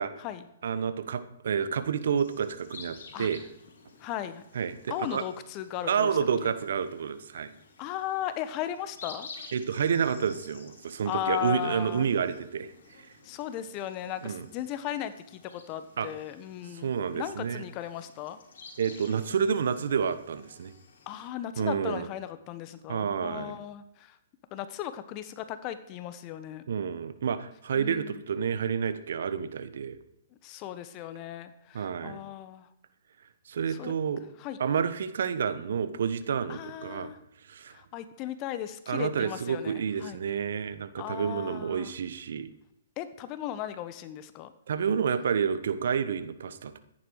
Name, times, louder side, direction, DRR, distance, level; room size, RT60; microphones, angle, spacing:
voice 1, 0.6-3.4 4.5-5.2 5.9-7.5 9.5-12.7 14.2-14.5 16.0-16.1 16.8-17.6 18.8-20.7 21.6-22.1 22.9-23.6 26.7-30.0 31.7-32.2 33.5-34.2 34.6-37.1 37.5-37.8 38.9-42.5 44.7-46.8, right 7 dB, 65° right, 12 dB, 1.2 m, -29 dB
sound 1, 2.2-21.3, left 4 dB, 65° left, 4.2 m, -52 dB
voice 2, 4.0-4.4 4.9-6.1 7.8-9.3 11.0-12.1 13.2-18.4 21.1-24.2 24.5-26.7 27.7-28.2 30.4-32.7 33.7-33.9 34.4-34.6 36.5-37.2 37.7-40.2 41.0-41.9 43.0-44.5, left 11 dB, 35° left, 12 dB, 1.3 m, -36 dB
14.5 x 10.5 x 4.8 m, 0.79 s
hypercardioid pair, 125°, 0 cm